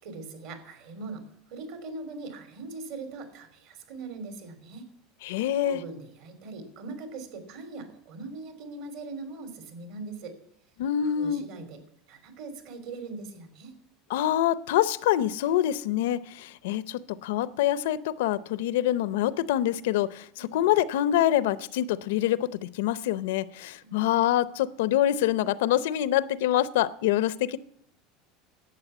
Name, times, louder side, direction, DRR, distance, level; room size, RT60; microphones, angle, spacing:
voice 1, 0.0-1.2 1.5-4.8 5.6-10.3 11.0-11.8 12.1-13.8 20.4-20.6 23.8-24.0, right 3 dB, 60° right, 7 dB, 3.0 m, -41 dB
voice 2, 5.2-5.8 10.8-11.4 14.1-27.6, left 12 dB, 90° left, 16 dB, 0.6 m, -25 dB
11.5 x 8.6 x 8.0 m, 0.73 s
cardioid pair, 165°, 0 cm